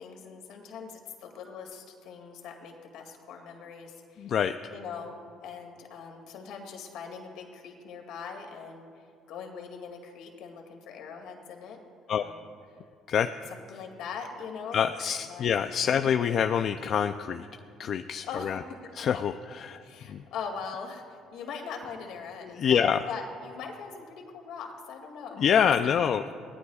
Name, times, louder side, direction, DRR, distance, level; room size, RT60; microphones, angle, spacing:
voice 1, 0.0-4.3 4.7-11.8 12.1-12.5 13.7-15.5 15.9-16.0 18.2-18.6 19.8-25.4 25.8-26.0, left 6 dB, 75° left, 3 dB, 2.3 m, -41 dB
voice 2, 4.2-4.5 12.1-12.2 13.1-13.3 14.7-17.5 17.8-18.6 18.9-19.8 20.1-20.2 22.4-23.0 25.4-26.3, left 8 dB, 55° left, 8 dB, 0.4 m, -26 dB
23.5 x 17.5 x 2.4 m, 2.4 s
cardioid pair, 105°, 0 cm